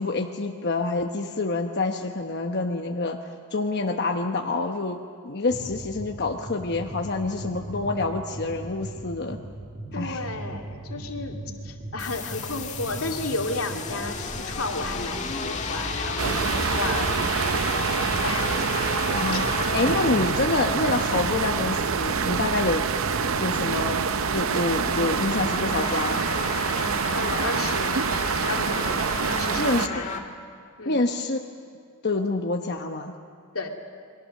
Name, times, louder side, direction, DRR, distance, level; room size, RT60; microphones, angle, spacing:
voice 1, 0.0-3.2 3.5-5.0 5.2-9.4 9.9-10.2 19.1-22.8 23.4-24.0 24.3-26.3 29.6-30.1 30.8-31.4 32.0-33.1, left 3 dB, 50° left, 3 dB, 1.0 m, -27 dB
sound 1, 5.5-24.1, right 1 dB, 35° right, 1.8 m, -39 dB
voice 2, 9.9-11.4 11.6-17.3 18.2-18.5 19.3-19.4 27.1-28.0 28.4-28.9 29.3-30.1 30.8-31.0 33.5-33.7, left 3 dB, 85° left, 2 dB, 2.4 m, -32 dB
sound 2, 12.0-30.2, left 3 dB, 35° left, 1.7 m, -33 dB
sound 3, 16.2-29.9, right 6 dB, 70° right, 0.6 m, -26 dB
29.0 x 22.5 x 6.6 m, 2.2 s
head